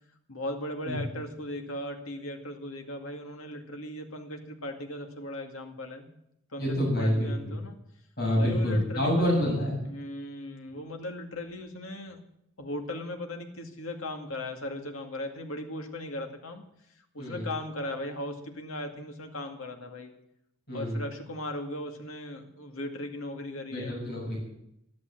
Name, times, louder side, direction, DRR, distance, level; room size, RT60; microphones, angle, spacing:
voice 1, 0.3-6.1 6.5-7.8 8.4-9.4 9.8-12.2 12.6-16.6 17.1-20.1 20.7-24.0, left 1 dB, 80° left, 4 dB, 2.2 m, -38 dB
voice 2, 6.6-7.6 8.2-9.7 17.2-17.5 20.7-20.9 23.7-24.4, equal, 50° left, -2 dB, 7.1 m, -27 dB
13.0 x 11.5 x 7.8 m, 0.79 s
head